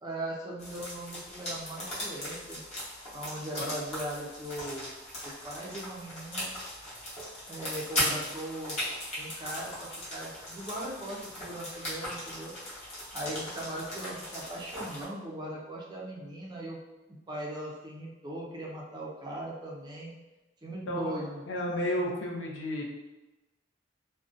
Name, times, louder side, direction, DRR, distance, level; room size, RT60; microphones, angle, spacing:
voice 1, 0.0-2.6 3.1-4.9 5.2-6.5 7.5-8.8 9.2-12.6 13.1-16.8 17.1-20.1 20.6-21.4, right 1 dB, 25° right, -3 dB, 0.4 m, -39 dB
sound 1, 0.6-15.0, equal, 35° left, 0.9 m, -38 dB
voice 2, 20.9-21.2 21.5-22.8, left 1 dB, 70° left, -2 dB, 0.5 m, -32 dB
2.6 x 2.1 x 2.4 m, 1.1 s
head